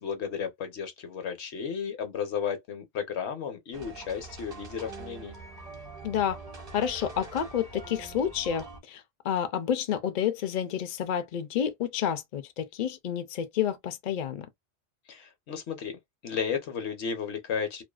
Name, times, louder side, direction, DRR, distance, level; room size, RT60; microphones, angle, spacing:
voice 1, 0.0-5.3 15.1-16.0 16.2-17.8, left 7 dB, 80° left, 1.0 m, -33 dB
sound 1, 3.7-8.8, right 3 dB, 40° right, 0.8 m, -44 dB
voice 2, 6.0-6.4 6.7-14.5, left 9 dB, 55° left, 0.5 m, -30 dB
2.5 x 2.2 x 2.3 m
omnidirectional pair, 1.1 m